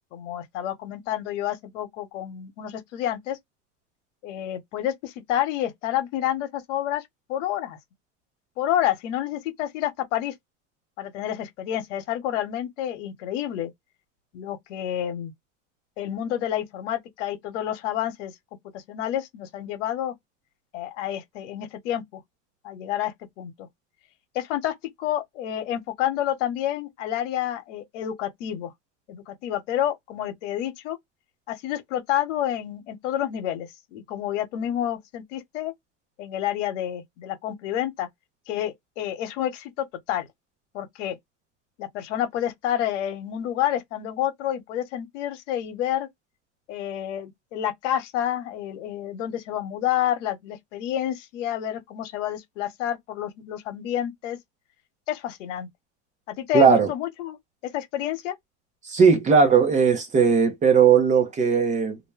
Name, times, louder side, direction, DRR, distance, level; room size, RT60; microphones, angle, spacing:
voice 1, 0.1-3.4 4.2-7.0 7.3-7.8 8.6-10.3 11.0-13.7 14.3-15.3 16.0-18.3 18.7-20.1 20.7-22.2 22.6-23.7 24.3-28.7 29.1-31.0 31.5-35.7 36.2-38.1 38.5-40.3 40.7-41.2 41.8-46.1 46.7-54.4 55.1-55.7 56.3-57.4 57.6-58.3, left 11 dB, 70° left, 1.1 m, -29 dB
voice 2, 56.5-56.9 58.8-62.0, right 6 dB, 20° right, 0.7 m, -18 dB
2.6 x 2.2 x 3.2 m
supercardioid pair, 145°, 38 cm